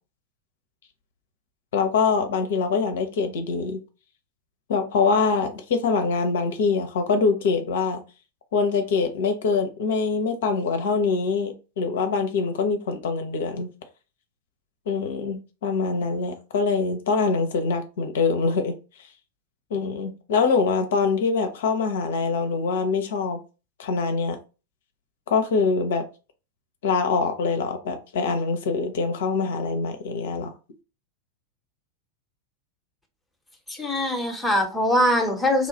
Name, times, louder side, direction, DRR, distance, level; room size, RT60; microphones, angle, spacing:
voice 1, 1.7-3.8 4.7-8.0 8.5-13.7 14.9-18.7 19.7-23.4 23.8-24.4 25.3-26.1 26.8-30.5, left 4 dB, 60° left, 0.5 m, -24 dB
voice 2, 33.7-35.7, left 1 dB, 5° left, 0.8 m, -22 dB
3.1 x 2.3 x 3.9 m
figure-of-eight pair, 90°, 0 cm